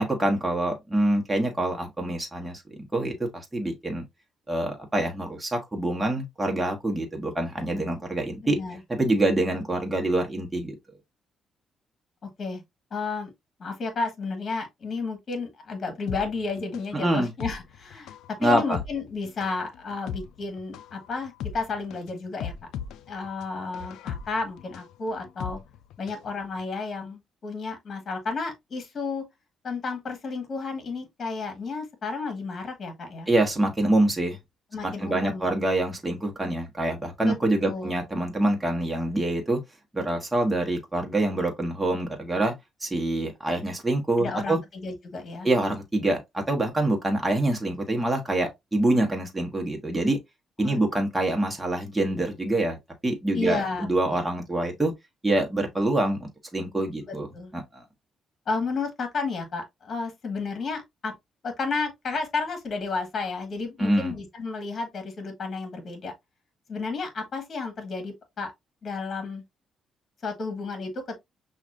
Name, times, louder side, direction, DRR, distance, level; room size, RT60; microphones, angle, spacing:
voice 1, 0.0-4.0 4.5-8.6 8.9-10.7 16.9-17.3 18.4-18.8 33.3-34.4 34.8-39.6 39.9-42.5 42.8-44.6 45.4-50.2 50.6-52.8 53.0-54.9 55.2-57.3 57.5-57.8 63.8-64.1, right 1 dB, 15° right, 1.2 m, -25 dB
voice 2, 8.4-8.8 12.2-12.6 12.9-13.3 13.6-18.1 18.4-22.5 23.1-25.6 26.0-29.2 29.6-33.3 34.7-35.4 37.2-37.4 37.6-38.0 44.2-45.5 50.6-51.0 53.3-54.2 57.0-57.5 58.5-61.1 61.4-66.1 66.7-68.5 68.8-69.4 70.2-71.1, left 4 dB, 45° left, 1.5 m, -32 dB
sound 1, 16.1-26.3 26.6-26.7, left 8 dB, 85° left, 0.3 m, -38 dB
5.8 x 2.4 x 2.5 m
cardioid pair, 90°, 0 cm